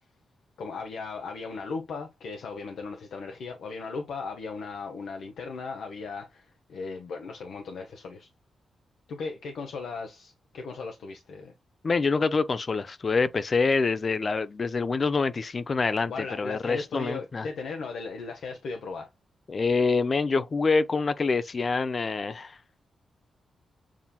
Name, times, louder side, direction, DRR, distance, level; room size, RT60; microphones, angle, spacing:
voice 1, 0.6-8.3 9.1-11.5 16.1-19.1, left 4 dB, 80° left, 0.8 m, -37 dB
voice 2, 11.8-16.1 16.4-17.5 19.5-22.6, left 4 dB, 40° left, 0.4 m, -26 dB
7.2 x 2.8 x 2.2 m
cardioid pair, 100°, 0 cm